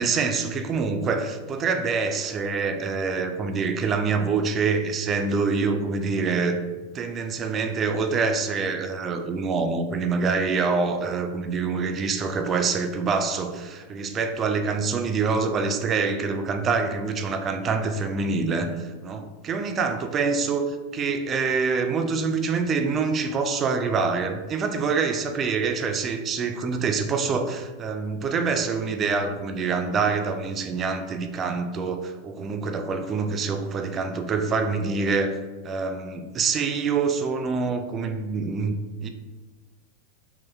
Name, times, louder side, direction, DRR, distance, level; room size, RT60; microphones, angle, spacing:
voice 1, 0.0-6.6 6.9-35.4 35.6-38.7 39.0-39.1, right 4 dB, 25° right, 7 dB, 0.3 m, -26 dB
3.9 x 2.1 x 3.3 m, 1.3 s
figure-of-eight pair, 90°, 0 cm